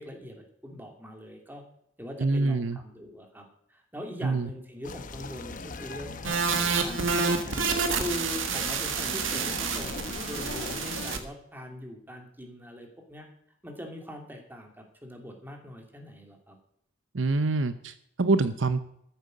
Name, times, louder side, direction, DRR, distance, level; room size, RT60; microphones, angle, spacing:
voice 1, 0.0-1.6 2.0-7.6 7.9-13.3 13.6-16.6, equal, 10° right, 2 dB, 2.8 m, -42 dB
voice 2, 2.2-2.8 4.2-4.5 17.1-18.9, right 3 dB, 70° right, 12 dB, 0.8 m, -26 dB
sound 1, 4.8-11.2, left 3 dB, 45° left, 1.0 m, -39 dB
sound 2, 6.2-11.2, right 5 dB, 85° right, 1.7 m, -29 dB
13.5 x 8.9 x 6.5 m, 0.72 s
head